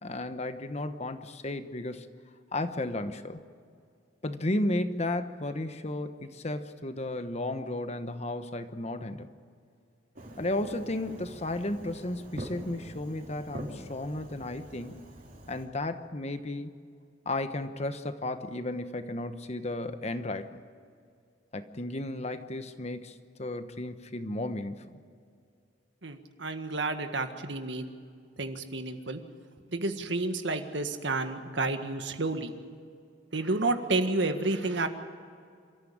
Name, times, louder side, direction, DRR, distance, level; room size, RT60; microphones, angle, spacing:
voice 1, 0.0-2.1 2.5-3.4 4.2-9.3 10.4-15.0 15.5-16.7 17.2-20.6 21.5-24.8, left 1 dB, 40° left, 9 dB, 1.1 m, -34 dB
Fireworks, 10.2-15.7, right 1 dB, 50° right, 4.2 m, -45 dB
voice 2, 26.0-27.9 28.4-29.2 29.7-32.5 33.3-34.9, right 2 dB, 80° right, 7 dB, 1.7 m, -30 dB
27.5 x 14.0 x 8.8 m, 2.3 s
head